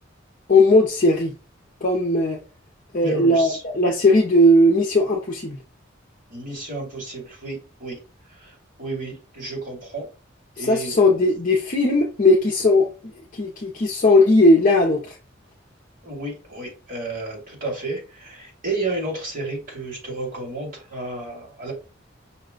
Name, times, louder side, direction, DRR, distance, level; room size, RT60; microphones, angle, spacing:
voice 1, 0.5-1.3 1.8-2.4 2.9-5.6 10.6-12.9 13.3-15.2, left 1 dB, 45° left, 0.6 m, -17 dB
voice 2, 3.0-3.6 6.3-8.0 8.3-8.5 8.8-10.1 10.6-11.1 16.0-21.7, right 2 dB, 45° right, 2.3 m, -31 dB
5.6 x 2.2 x 3.7 m
head